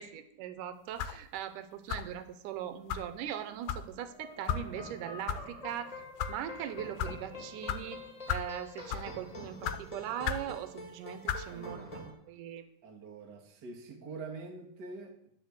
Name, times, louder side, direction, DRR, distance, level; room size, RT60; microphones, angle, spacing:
voice 1, 0.0-6.0 6.3-8.0 8.3-11.9 12.3-12.7, right 10 dB, 85° right, 2.3 m, -40 dB
sound 1, 1.0-1.2 1.9-2.2 2.9-3.1 3.7-3.9 4.5-4.6 5.3-5.4 6.0-6.3 7.0-7.1 7.7-7.8 8.3-8.5 8.9-9.1 9.6-9.8 10.2-10.5 11.3-11.5, left 9 dB, 85° left, 2.3 m, -33 dB
sound 2, 4.1-12.1, left 1 dB, 15° left, 1.5 m, -46 dB
voice 2, 11.5-12.1 12.8-15.3, right 4 dB, 45° right, 1.5 m, -45 dB
11.5 x 4.4 x 7.9 m
omnidirectional pair, 3.7 m